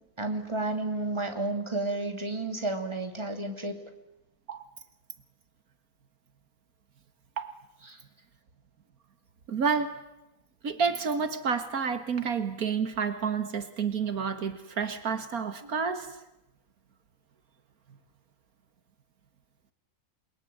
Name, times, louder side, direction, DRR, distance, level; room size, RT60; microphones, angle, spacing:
voice 1, 0.2-3.8 7.9-8.0 15.6-15.7, right 2 dB, 20° right, 5 dB, 3.0 m, -31 dB
voice 2, 9.5-10.0 10.6-16.2, right 6 dB, 80° right, 10 dB, 2.1 m, -29 dB
28.5 x 22.0 x 9.4 m, 0.91 s
omnidirectional pair, 1.5 m